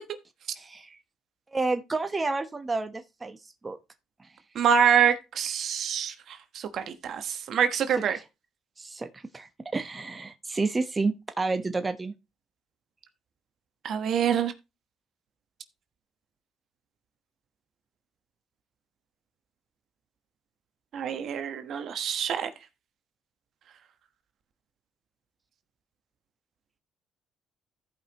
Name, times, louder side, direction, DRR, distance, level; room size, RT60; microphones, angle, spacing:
voice 1, 0.5-1.0 1.5-3.4 3.6-3.8 4.2-4.3 8.0-8.2 8.8-12.1, right 3 dB, 25° right, 1.1 m, -30 dB
voice 2, 4.5-8.2 13.8-14.5 20.9-22.5, right 8 dB, 65° right, 1.2 m, -26 dB
15.0 x 5.4 x 3.0 m
supercardioid pair, 80°, 0 cm